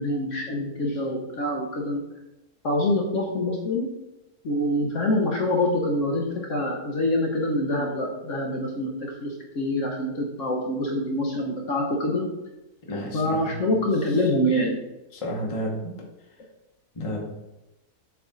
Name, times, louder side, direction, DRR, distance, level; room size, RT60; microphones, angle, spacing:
voice 1, 0.0-2.0 2.6-3.9 4.4-12.2 13.1-14.8, left 1 dB, 55° left, -1 dB, 1.1 m, -25 dB
voice 2, 12.9-13.7 14.1-14.2 15.1-15.7 16.9-17.2, equal, 25° left, -1 dB, 1.0 m, -31 dB
7.1 x 3.4 x 3.9 m, 0.96 s
omnidirectional pair, 1.7 m